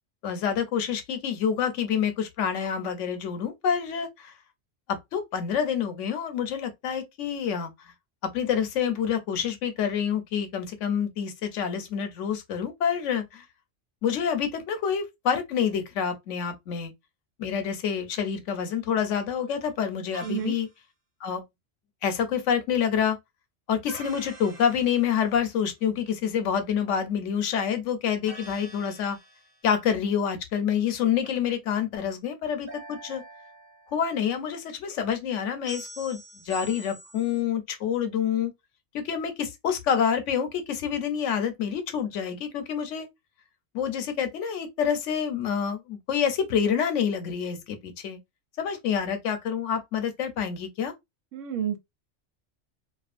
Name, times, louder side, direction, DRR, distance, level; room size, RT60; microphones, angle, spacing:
voice 1, 0.2-4.3 5.1-7.7 8.3-13.4 14.0-16.9 17.4-20.7 21.2-21.4 22.0-23.2 23.7-29.2 29.6-33.2 33.9-36.2 36.5-38.5 38.9-43.1 43.7-48.2 48.6-50.9, left 8 dB, 85° left, 1.0 m, -27 dB
sound 1, 20.1-20.7 23.9-25.6 28.3-29.7 32.7-34.1 35.7-37.4, right 1 dB, 55° right, 1.0 m, -45 dB
voice 2, 20.2-20.6 51.3-51.8, right 8 dB, 85° right, 0.9 m, -30 dB
2.4 x 2.4 x 2.4 m
omnidirectional pair, 1.3 m